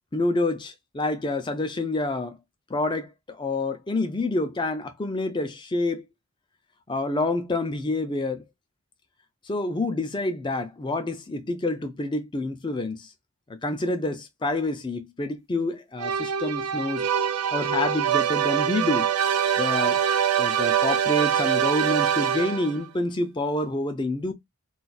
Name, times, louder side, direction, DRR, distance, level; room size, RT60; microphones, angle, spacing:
voice 1, 0.1-2.4 2.7-6.1 6.9-8.4 9.4-13.1 13.5-17.1 17.5-19.1 19.6-20.0 20.4-24.3, left 2 dB, 20° left, 0.4 m, -28 dB
sound 1, 16.0-22.8, right 9 dB, 85° right, 0.4 m, -24 dB
2.4 x 2.4 x 4.0 m
head